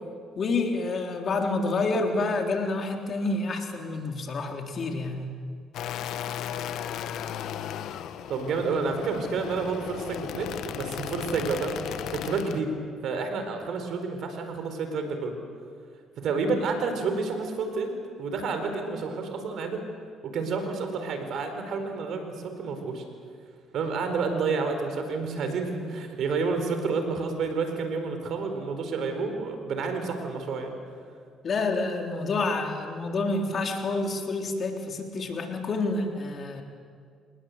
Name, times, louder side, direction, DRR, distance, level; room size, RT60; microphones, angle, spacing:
voice 1, 0.4-5.3 31.4-36.6, left 3 dB, 50° left, 3 dB, 3.8 m, -28 dB
sound 1, 5.7-12.6, left 10 dB, 70° left, 1.2 m, -35 dB
voice 2, 8.3-12.7 13.0-15.4 16.2-19.8 20.2-23.0 23.7-30.8, right 4 dB, 65° right, 6 dB, 4.5 m, -30 dB
27.5 x 19.5 x 8.1 m, 2.1 s
supercardioid pair, 65°, 0 cm